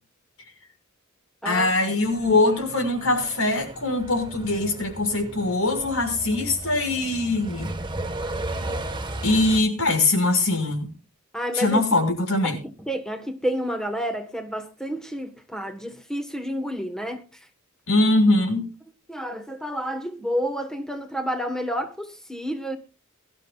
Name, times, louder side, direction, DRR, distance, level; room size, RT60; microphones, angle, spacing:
voice 1, 1.4-7.7 9.2-10.9 11.5-12.6 17.9-18.7, left 2 dB, 75° left, 6.0 m, -22 dB
Truck, 2.0-9.6, right 1 dB, 20° right, 1.5 m, -35 dB
voice 2, 11.3-11.8 12.4-17.2 19.1-22.8, equal, 5° left, 1.4 m, -30 dB
23.0 x 12.5 x 2.4 m
head